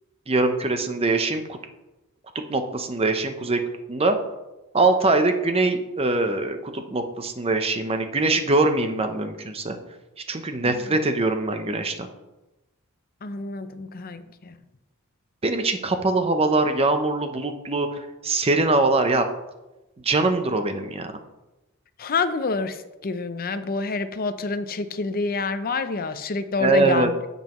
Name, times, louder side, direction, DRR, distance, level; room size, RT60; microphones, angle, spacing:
voice 1, 0.3-1.4 2.3-3.6 3.9-4.2 4.7-9.8 10.3-12.1 15.4-19.2 20.0-21.1 26.6-27.1, right 2 dB, 25° right, 7 dB, 0.7 m, -22 dB
voice 2, 10.6-11.0 13.2-14.6 22.0-27.2, left 4 dB, 40° left, 11 dB, 0.6 m, -28 dB
16.0 x 5.4 x 3.1 m, 1.0 s
head